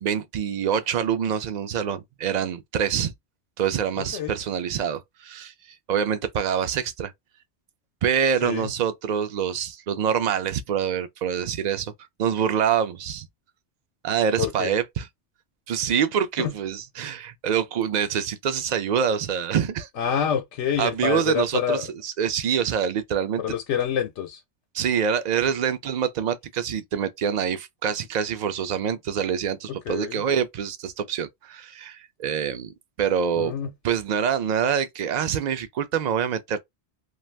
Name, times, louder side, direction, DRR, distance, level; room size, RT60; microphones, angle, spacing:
voice 1, 0.0-3.1 3.6-5.5 5.9-7.1 8.0-11.9 12.2-13.3 14.0-15.1 15.7-19.9 20.8-23.4 24.7-33.5 33.8-36.6, right 8 dB, 60° right, 0.5 m, -25 dB
voice 2, 4.0-4.4 8.4-8.7 14.4-14.7 16.4-16.5 20.0-21.9 23.4-24.4 29.7-30.2 33.4-33.7, left 8 dB, 90° left, 0.9 m, -27 dB
2.5 x 2.3 x 3.1 m
omnidirectional pair, 1.2 m